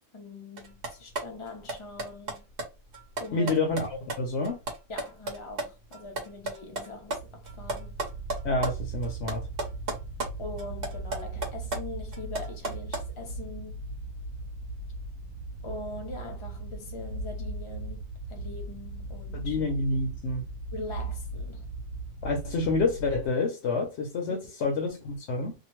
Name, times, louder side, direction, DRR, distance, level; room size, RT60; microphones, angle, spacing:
voice 1, 0.1-2.5 3.2-3.6 4.9-8.0 10.4-13.9 15.6-19.6 20.7-21.7 24.3-24.7, left 2 dB, 45° left, 0.4 m, -42 dB
sound 1, 0.6-5.6 5.9-8.7 9.0-10.3 10.6-13.1, right 2 dB, 50° right, 1.1 m, -34 dB
voice 2, 3.3-4.6 8.4-9.5 19.3-20.5 22.2-25.5, left 3 dB, 65° left, 0.9 m, -28 dB
sound 2, 7.1-23.3, right 2 dB, 90° right, 1.0 m, -38 dB
2.8 x 2.1 x 3.0 m
omnidirectional pair, 1.4 m